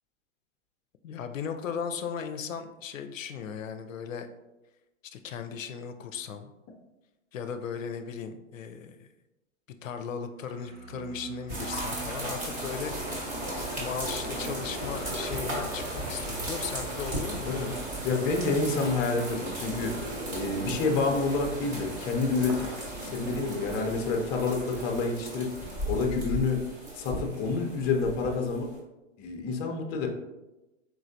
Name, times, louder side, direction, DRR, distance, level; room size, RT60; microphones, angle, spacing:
voice 1, 1.0-4.3 5.1-6.5 7.3-9.1 9.8-13.4 13.8-17.5, left 7 dB, 85° left, 7 dB, 0.5 m, -37 dB
sound 1, 10.4-22.1, right 2 dB, 85° right, 1.1 m, -44 dB
sound 2, 11.5-28.7, right 1 dB, 20° right, 1.1 m, -36 dB
sound 3, 16.1-25.0, equal, 40° right, 0.8 m, -43 dB
voice 2, 18.0-22.7 23.0-25.5 25.9-26.7 26.9-28.7 29.2-30.1, left 4 dB, 25° left, 3 dB, 0.6 m, -28 dB
4.6 x 3.2 x 2.6 m, 1.0 s
hypercardioid pair, 115°, 38 cm